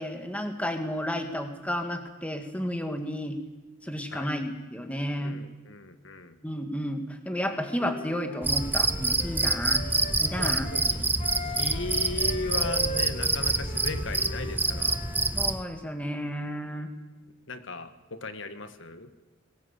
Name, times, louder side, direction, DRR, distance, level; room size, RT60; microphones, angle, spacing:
voice 1, 0.0-3.4 3.8-5.4 6.4-9.9 10.2-10.7 15.3-16.9, equal, 5° left, 5 dB, 2.1 m, -32 dB
voice 2, 5.2-6.4 10.4-15.0 17.5-19.1, left 2 dB, 70° left, 9 dB, 1.7 m, -37 dB
Wind instrument woodwind instrument, 7.3-15.3, left 1 dB, 40° left, 2.6 m, -41 dB
Cricket, 8.4-15.6, right 3 dB, 10° right, 0.7 m, -27 dB
21.5 x 18.5 x 8.3 m, 1.2 s
head